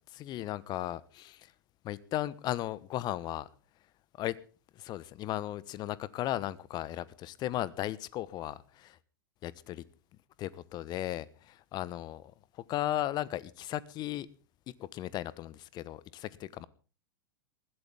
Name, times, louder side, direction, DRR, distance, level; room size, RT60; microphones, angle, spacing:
voice 1, 0.1-1.5 1.8-3.5 4.2-4.4 4.7-9.0 9.4-9.8 10.4-12.2 12.5-14.3 14.7-16.7, left 14 dB, 35° left, 1.1 m, -36 dB
20.5 x 16.0 x 3.6 m
figure-of-eight pair, 95°, 12 cm